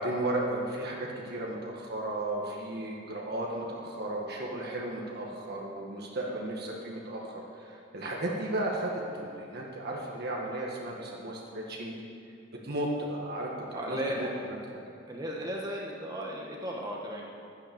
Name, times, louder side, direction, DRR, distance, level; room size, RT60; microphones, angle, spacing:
voice 1, 0.0-11.9 12.6-14.6, right 1 dB, 55° right, -2 dB, 1.8 m, -34 dB
voice 2, 13.7-14.3 15.1-17.3, equal, 20° right, -2 dB, 1.2 m, -35 dB
11.5 x 9.8 x 7.1 m, 2.4 s
head